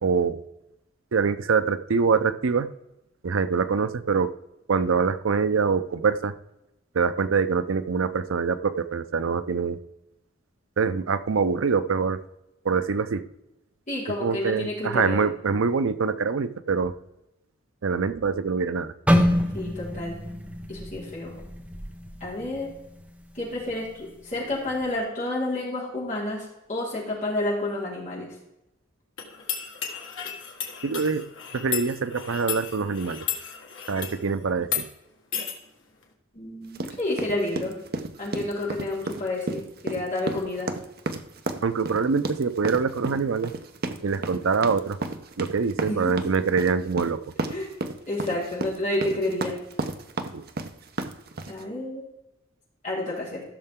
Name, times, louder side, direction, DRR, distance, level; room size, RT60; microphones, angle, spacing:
voice 1, 0.0-0.4 1.1-2.7 3.2-4.3 4.7-6.3 6.9-9.8 10.8-12.2 12.6-13.2 14.2-16.9 17.8-18.9 30.8-31.2 31.5-33.3 33.9-34.9 41.6-43.5 44.0-45.0 45.4-47.3 50.3-50.4, right 5 dB, 85° right, 13 dB, 0.6 m, -24 dB
voice 2, 13.9-15.2 19.5-20.2 20.7-21.3 22.2-22.7 23.3-28.3 36.3-37.7 38.2-40.7 45.8-46.3 47.5-47.7 48.1-49.5 51.5-52.0 52.8-53.4, left 2 dB, 40° left, -5 dB, 4.3 m, -30 dB
sound 1, 19.1-23.1 23.5-23.7 24.4-24.7, equal, 5° right, 1.0 m, -26 dB
sound 2, 29.2-34.2 34.6-34.9 35.3-35.6, left 8 dB, 75° left, 1.8 m, -33 dB
sound 3, 36.7-51.6, right 2 dB, 50° right, 0.8 m, -32 dB
15.0 x 6.6 x 3.7 m, 0.91 s
head